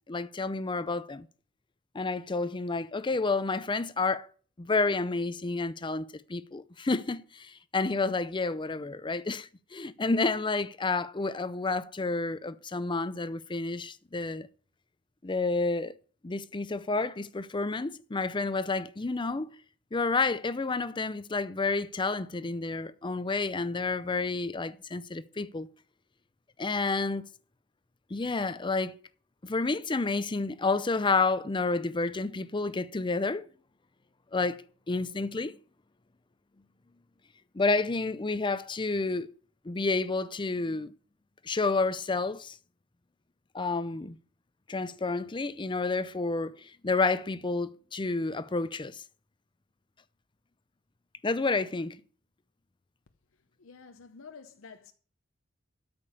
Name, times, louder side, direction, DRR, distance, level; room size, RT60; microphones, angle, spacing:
voice 1, 0.1-1.3 1.9-4.3 4.6-14.5 15.2-15.9 16.2-19.5 19.9-25.7 26.6-27.3 28.1-29.0 29.4-33.4 34.3-34.6 34.9-35.6 37.5-39.3 39.6-40.9 41.4-42.6 43.5-44.2 44.7-49.0 51.2-52.0, left 3 dB, 25° left, 0.5 m, -30 dB
voice 2, 53.6-54.9, left 5 dB, 80° left, 0.7 m, -49 dB
13.0 x 5.3 x 6.9 m
head